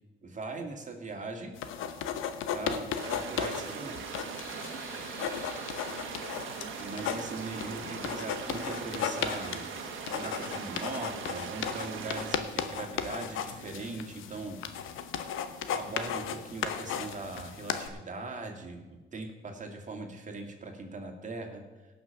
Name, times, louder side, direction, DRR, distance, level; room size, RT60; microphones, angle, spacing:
voice 1, 0.2-1.5 2.5-4.1 6.8-9.7 10.1-14.9 15.7-21.6, right 3 dB, 40° right, 3 dB, 2.2 m, -40 dB
sound 1, 1.6-17.9, left 8 dB, 85° left, 0.9 m, -36 dB
sound 2, 3.0-12.4, right 7 dB, 80° right, 1.4 m, -41 dB
sound 3, 4.4-10.5, left 1 dB, 35° left, 3.4 m, -50 dB
17.0 x 6.1 x 5.9 m, 1.2 s
cardioid pair, 90°, 20 cm